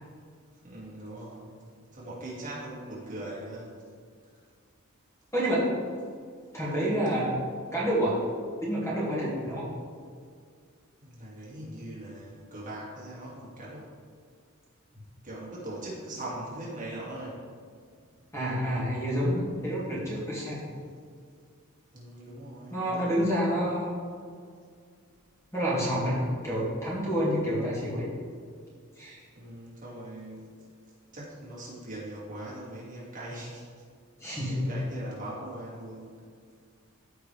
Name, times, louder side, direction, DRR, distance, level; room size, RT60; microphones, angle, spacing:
voice 1, 0.6-1.6 1.9-3.8 11.0-13.9 15.2-17.4 21.9-23.4 29.3-30.4 31.1-33.7 34.2-36.1, right 1 dB, 35° right, -6 dB, 2.2 m, -41 dB
voice 2, 5.3-5.7 6.5-7.3 7.7-8.2 8.6-9.7 18.3-20.6 22.7-24.0 25.5-28.1 29.0-29.2 34.2-34.7, equal, 15° left, -7 dB, 2.1 m, -28 dB
14.0 x 4.8 x 3.4 m, 2.1 s
head